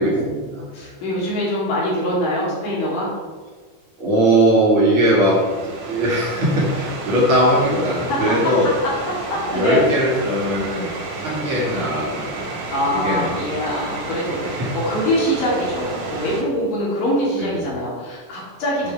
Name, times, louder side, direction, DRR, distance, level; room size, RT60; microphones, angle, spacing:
voice 1, 0.0-0.7 4.0-8.7 9.5-12.5 12.9-13.4 14.4-14.7 17.4-17.6, right 1 dB, 50° right, -4 dB, 2.1 m, -20 dB
voice 2, 0.7-3.1 8.1-8.5 8.8-8.9 9.3-9.8 12.7-18.9, equal, 85° left, -5 dB, 4.2 m, -23 dB
sound 1, 4.9-16.4, right 3 dB, 80° right, 3.3 m, -31 dB
8.5 x 6.3 x 4.4 m, 1.5 s
omnidirectional pair, 3.7 m